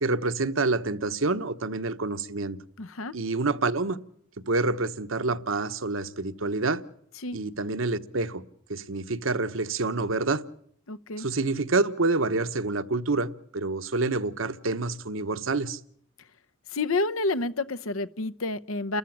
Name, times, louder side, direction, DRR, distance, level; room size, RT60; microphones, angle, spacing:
voice 1, 0.0-2.6 3.1-4.0 4.5-6.8 7.3-8.4 8.7-10.4 11.2-15.8, right 3 dB, 80° right, 1.2 m, -27 dB
voice 2, 2.8-3.1 7.2-7.4 10.9-11.3 16.7-19.0, left 2 dB, 90° left, 0.9 m, -29 dB
29.5 x 14.0 x 8.7 m
head